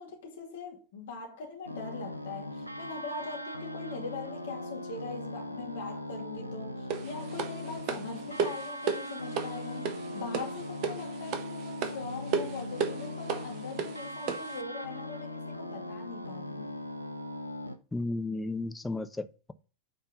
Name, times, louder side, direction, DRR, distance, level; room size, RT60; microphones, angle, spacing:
voice 1, 0.0-16.7, left 4 dB, 55° left, 2.4 m, -41 dB
sound 1, 1.7-17.8, left 1 dB, 90° right, 0.7 m, -39 dB
sound 2, 6.9-14.6, right 6 dB, 40° right, 1.2 m, -35 dB
voice 2, 17.9-19.5, left 2 dB, 10° left, 0.7 m, -34 dB
8.7 x 4.4 x 5.4 m
figure-of-eight pair, 90°, 0 cm